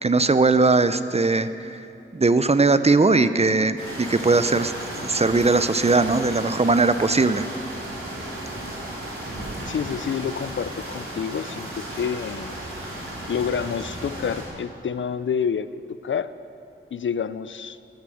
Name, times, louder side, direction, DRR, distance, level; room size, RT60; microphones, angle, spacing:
voice 1, 0.0-1.8 2.1-4.7 5.0-7.4, right 3 dB, 30° right, 12 dB, 0.6 m, -19 dB
sound 1, 3.8-14.4, right 1 dB, 90° right, 3.7 m, -34 dB
voice 2, 9.7-12.5 13.3-15.7 16.0-16.3 16.9-17.8, left 7 dB, 70° left, 14 dB, 0.5 m, -28 dB
13.0 x 12.0 x 6.4 m, 2.8 s
cardioid pair, 50°, 21 cm